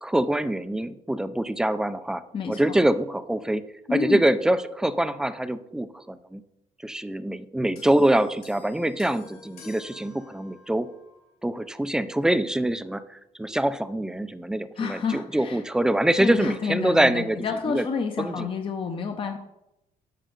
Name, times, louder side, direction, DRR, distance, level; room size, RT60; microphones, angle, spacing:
voice 1, 0.0-2.2 2.5-3.6 3.9-6.4 6.8-10.9 11.4-17.4 17.7-17.9 18.2-18.5, right 1 dB, 5° right, 13 dB, 0.4 m, -24 dB
voice 2, 3.9-4.2 14.8-15.6 16.2-19.4, left 5 dB, 30° left, 4 dB, 0.7 m, -29 dB
sound 1, 7.8-11.4 12.3-12.4, left 4 dB, 65° left, 2.9 m, -50 dB
9.2 x 6.4 x 3.9 m, 0.88 s
cardioid pair, 110°, 17 cm